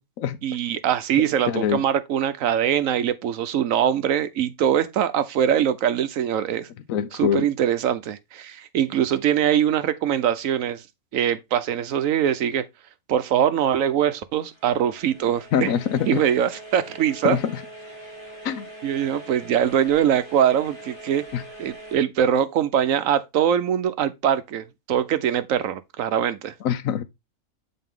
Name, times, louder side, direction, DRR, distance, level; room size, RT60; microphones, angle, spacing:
voice 1, 0.4-6.7 7.1-10.8 11.1-12.7 13.1-15.7 16.1-17.4 18.8-21.3 21.6-26.5, right 9 dB, 80° right, 1.1 m, -22 dB
voice 2, 1.2-1.8 6.9-7.5 15.5-16.2 17.2-17.5 18.4-18.6 21.3-21.4 26.6-27.0, left 9 dB, 85° left, 1.2 m, -24 dB
sound 1, 14.3-22.0, right 1 dB, 20° right, 3.1 m, -42 dB
7.7 x 4.2 x 3.7 m
omnidirectional pair, 1.4 m